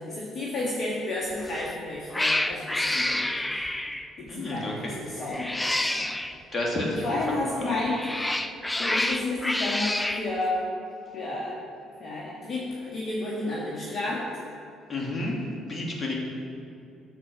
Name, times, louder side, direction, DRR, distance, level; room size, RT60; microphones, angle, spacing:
voice 1, 0.0-3.6 4.2-6.1 6.8-8.3 8.8-10.6 11.1-11.6 12.0-14.3, left 2 dB, 45° left, -5 dB, 1.6 m, -31 dB
Cat, 1.4-1.7 2.1-4.1 5.3-6.3 7.7-10.3, left 1 dB, 15° left, 0.6 m, -28 dB
voice 2, 4.3-5.0 6.5-7.1 7.6-7.8 14.9-15.4 15.7-16.1, left 2 dB, 30° left, -2 dB, 2.5 m, -30 dB
13.5 x 4.6 x 6.1 m, 2.5 s
figure-of-eight pair, 45°, 0 cm